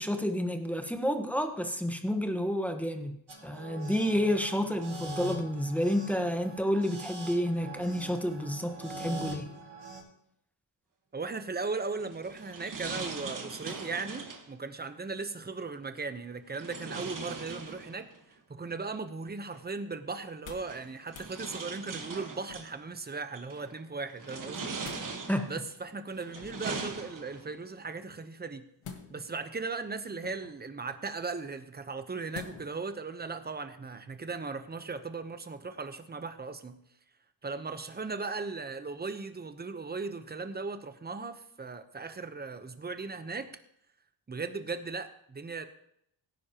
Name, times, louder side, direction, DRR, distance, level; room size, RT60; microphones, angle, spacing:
voice 1, 0.0-3.1 3.4-9.5 25.3-25.5, equal, 5° left, 5 dB, 1.3 m, -30 dB
sound 1, 3.3-10.0, right 1 dB, 70° right, 5.3 m, -43 dB
voice 2, 11.1-24.8 25.5-28.6 29.1-36.8 37.4-43.5 44.3-45.7, right 4 dB, 20° right, 9 dB, 0.9 m, -37 dB
sound 2, 12.0-14.5 16.5-18.2 19.5-19.6 20.6-22.7 23.3-23.7 24.2-25.6 26.1-27.6, right 4 dB, 40° right, 1.5 m, -40 dB
sound 3, 20.2-20.8 21.1-21.3 22.5-22.9 24.4-25.1 26.3-26.8 28.8-29.4 30.2-30.7 32.3-32.8 33.3-33.4, left 6 dB, 85° left, 1.7 m, -47 dB
17.0 x 9.9 x 3.0 m, 0.72 s
cardioid pair, 105°, 48 cm